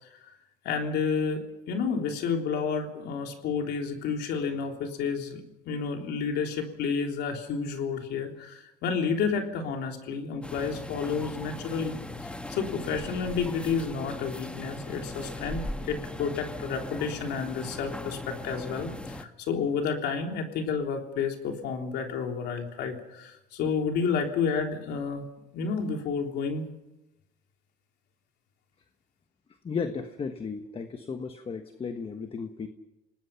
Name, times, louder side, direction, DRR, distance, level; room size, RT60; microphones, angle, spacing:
voice 1, 0.6-25.2 25.5-26.7, left 5 dB, 80° left, 3 dB, 3.5 m, -30 dB
sound 1, 10.4-19.2, left 2 dB, 5° left, 1.3 m, -39 dB
voice 2, 29.6-32.7, left 5 dB, 35° left, 7 dB, 1.4 m, -34 dB
29.5 x 19.0 x 5.8 m, 0.92 s
cardioid pair, 110°, 17 cm